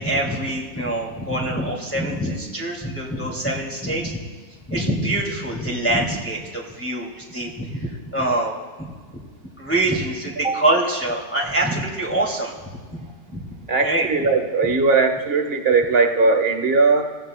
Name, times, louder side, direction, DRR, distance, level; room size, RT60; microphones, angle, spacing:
voice 1, 0.0-4.2 4.7-9.2 9.6-12.5 12.9-13.4 13.8-14.1, right 1 dB, 10° left, -4 dB, 2.3 m, -25 dB
voice 2, 13.7-17.2, right 4 dB, 55° right, 6 dB, 1.5 m, -19 dB
29.0 x 16.5 x 2.2 m, 1.5 s
omnidirectional pair, 1.3 m